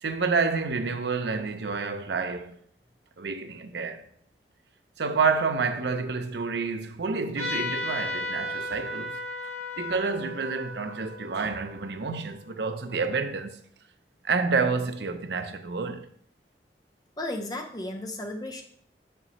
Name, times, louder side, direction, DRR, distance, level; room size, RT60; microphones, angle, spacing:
voice 1, 0.0-2.6 3.2-4.0 5.0-9.2 9.8-13.6 14.2-16.1, right 4 dB, 80° right, 0.6 m, -29 dB
Trumpet, 7.4-12.4, left 2 dB, 40° right, 1.9 m, -35 dB
voice 2, 17.2-18.6, left 1 dB, 20° left, 0.7 m, -34 dB
6.7 x 6.5 x 3.1 m
head